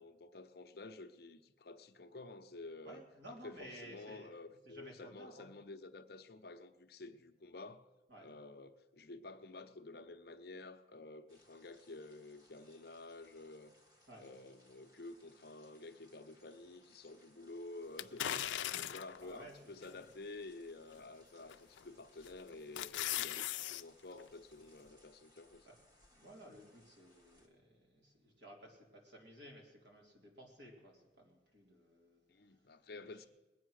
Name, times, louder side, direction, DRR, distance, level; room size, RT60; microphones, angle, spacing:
voice 1, 0.0-7.9 8.2-13.7 14.2-18.2 18.7-25.7 32.3-33.3, left 2 dB, 55° left, 0.7 m, -51 dB
voice 2, 2.8-4.3 4.6-5.5 8.1-8.3 14.1-14.3 18.2-20.0 20.9-21.1 21.4-21.5 25.6-25.8 26.0-33.3, right 1 dB, 65° right, 3.3 m, -56 dB
sound 1, 11.3-27.5, left 1 dB, 20° right, 1.6 m, -69 dB
sound 2, 18.0-19.2 19.8-19.9 21.5-21.8 22.3-23.8 24.2-24.3, left 12 dB, 85° left, 0.4 m, -38 dB
21.0 x 8.3 x 6.3 m
head